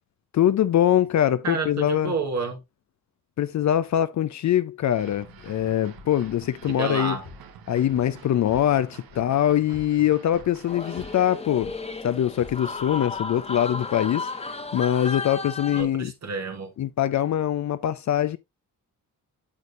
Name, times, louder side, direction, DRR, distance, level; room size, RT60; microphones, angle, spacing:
voice 1, 0.3-2.1 3.4-7.2 7.7-11.7 12.0-16.1 16.8-18.4, left 11 dB, 55° left, 0.5 m, -23 dB
voice 2, 1.4-2.6 6.7-7.2 15.7-16.7, right 4 dB, 50° right, 1.3 m, -30 dB
sound 1, 4.9-11.4, right 8 dB, 85° right, 1.1 m, -48 dB
sound 2, 5.0-13.6, left 5 dB, 85° left, 3.2 m, -50 dB
sound 3, 10.7-15.8, left 3 dB, 20° left, 1.0 m, -34 dB
8.7 x 6.6 x 2.5 m
cardioid pair, 90°, 35 cm